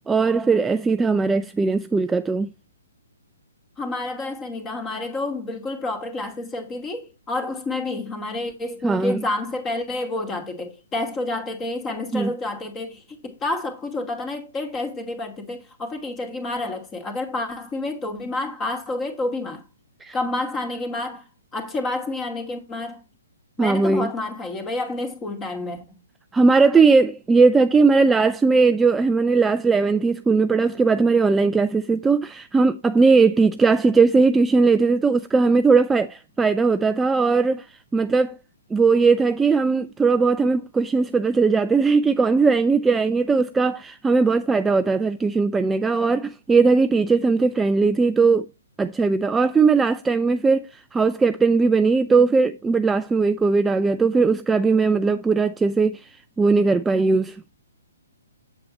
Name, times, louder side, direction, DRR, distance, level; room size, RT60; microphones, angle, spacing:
voice 1, 0.1-2.5 8.8-9.2 12.1-12.3 20.0-20.2 23.6-24.1 26.3-37.7 37.9-38.4 38.7-48.5 48.8-57.4, right 4 dB, 10° right, 0.4 m, -19 dB
voice 2, 3.8-19.6 20.1-21.3 21.5-23.0 23.6-26.0, left 2 dB, 15° left, 2.4 m, -29 dB
7.7 x 7.6 x 4.2 m
hypercardioid pair, 140°, 0 cm